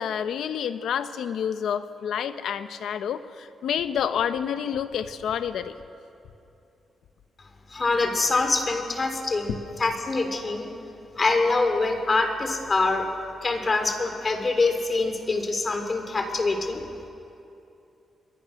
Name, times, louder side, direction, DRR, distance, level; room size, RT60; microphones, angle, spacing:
voice 1, 0.0-5.7, left 8 dB, 85° left, 10 dB, 1.0 m, -29 dB
voice 2, 7.7-10.7 11.1-13.1 13.4-16.8, left 3 dB, 35° left, 6 dB, 3.5 m, -25 dB
27.0 x 22.0 x 6.5 m, 2.7 s
cardioid pair, 85°, 0 cm